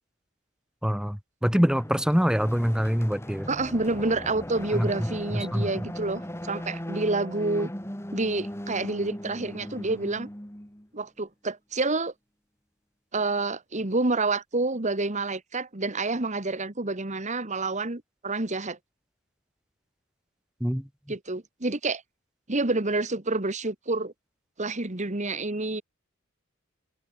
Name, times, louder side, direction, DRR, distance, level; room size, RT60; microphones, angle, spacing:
voice 1, 0.8-3.5 4.7-5.1 5.3-5.7 20.6-20.8, equal, 5° right, 1.3 m, -25 dB
sound 1, 1.7-10.9, equal, 10° left, 3.9 m, -38 dB
voice 2, 3.5-7.7 8.1-10.3 10.9-12.1 13.1-18.8 21.1-22.0 22.5-24.1 24.6-25.8, right 2 dB, 35° right, 1.6 m, -28 dB
open air
head